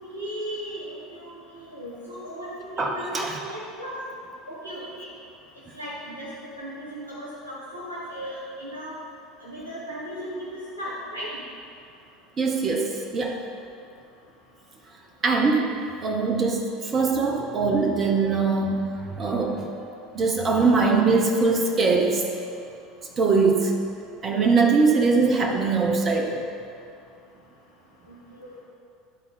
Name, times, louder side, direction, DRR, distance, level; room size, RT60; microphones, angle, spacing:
voice 1, 0.0-4.0 4.5-5.1 5.7-9.0 9.4-11.4 28.1-28.6, equal, 90° right, -9 dB, 1.5 m, -36 dB
voice 2, 2.8-3.4 12.4-13.4 15.2-15.7 16.0-22.4 23.2-23.7 24.2-26.4, right 4 dB, 30° right, 1 dB, 1.0 m, -22 dB
12.0 x 4.0 x 5.4 m, 2.4 s
figure-of-eight pair, 70°, 0 cm